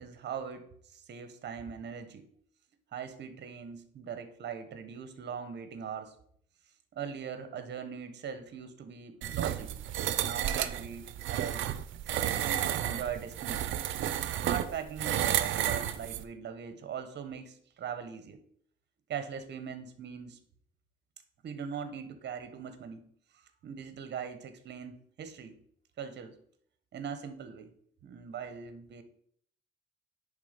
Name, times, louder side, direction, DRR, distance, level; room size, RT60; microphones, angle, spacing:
voice 1, 0.0-2.3 2.9-6.1 6.9-9.7 10.0-11.7 12.4-13.9 14.4-18.4 19.1-20.4 21.4-23.0 23.6-25.6 26.0-26.4 26.9-27.7 28.0-29.0, right 7 dB, 60° right, 9 dB, 1.1 m, -41 dB
sound 1, 9.2-16.2, right 11 dB, 80° right, 0.6 m, -32 dB
9.7 x 3.7 x 5.1 m, 0.64 s
cardioid pair, 90°, 20 cm